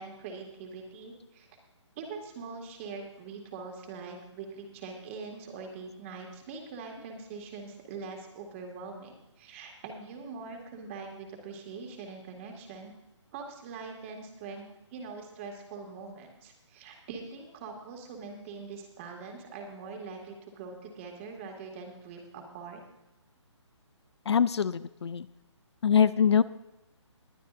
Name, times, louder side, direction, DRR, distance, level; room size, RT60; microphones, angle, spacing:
voice 1, 0.0-1.5 2.0-12.9 13.3-22.8, right 4 dB, 25° right, 2 dB, 2.2 m, -43 dB
voice 2, 24.3-25.3 25.8-26.4, left 7 dB, 60° left, 16 dB, 0.5 m, -23 dB
21.5 x 9.8 x 2.6 m, 0.96 s
hypercardioid pair, 160°, 16 cm